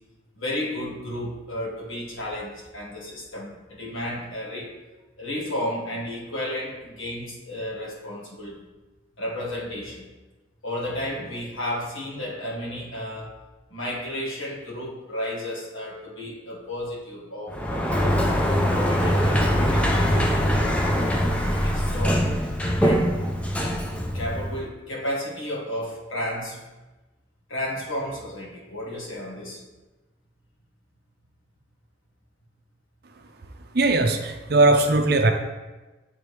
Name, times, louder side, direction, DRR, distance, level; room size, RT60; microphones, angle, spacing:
voice 1, 0.4-4.7 5.2-8.6 9.2-10.1 10.6-13.3 13.7-18.2 18.7-22.3 22.8-23.2 24.1-26.6 27.5-29.6, left 1 dB, 90° left, -4 dB, 1.6 m, -33 dB
Sliding door, 17.5-24.6, equal, 5° left, 0.4 m, -23 dB
voice 2, 33.7-35.3, right 2 dB, 50° right, 5 dB, 0.6 m, -19 dB
8.7 x 3.8 x 3.2 m, 1.2 s
head